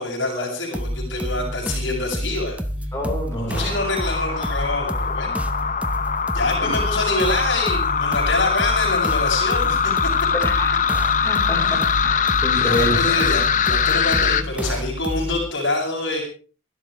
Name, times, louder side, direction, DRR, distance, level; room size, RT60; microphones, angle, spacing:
voice 1, 0.0-2.6 3.4-5.3 6.3-10.1 11.6-11.9 12.5-16.2, left 2 dB, 65° left, -1 dB, 8.0 m, -26 dB
sound 1, 0.7-15.5, equal, 5° right, 0.9 m, -29 dB
voice 2, 2.9-3.7 6.6-6.7 10.4-10.7 11.2-13.0, equal, 15° left, -2 dB, 4.7 m, -27 dB
sound 2, 3.5-14.4, left 7 dB, 40° left, 0.9 m, -22 dB
29.0 x 12.5 x 3.4 m, 0.37 s
head